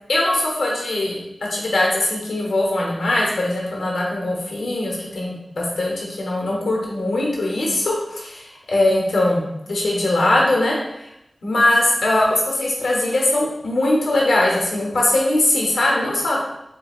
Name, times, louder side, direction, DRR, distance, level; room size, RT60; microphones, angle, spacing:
voice 1, 0.1-1.2 1.5-10.7 11.4-16.4, left 1 dB, 90° left, -3 dB, 0.9 m, -21 dB
6.5 x 2.2 x 2.4 m, 0.85 s
cardioid pair, 45°, 0 cm